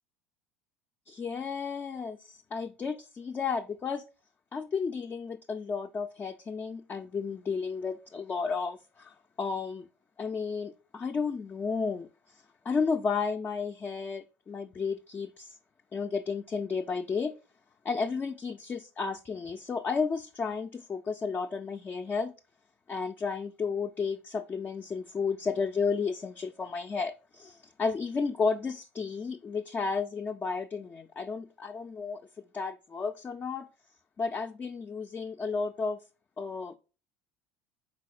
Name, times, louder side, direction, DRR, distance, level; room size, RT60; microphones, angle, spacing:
voice 1, 1.1-4.0 4.5-9.9 10.2-12.1 12.7-15.6 15.9-17.3 17.8-22.3 22.9-32.2 32.5-33.7 34.2-36.0 36.4-36.8, left 5 dB, 25° left, 0.3 m, -32 dB
4.1 x 4.0 x 2.4 m
hypercardioid pair, 70°, 7 cm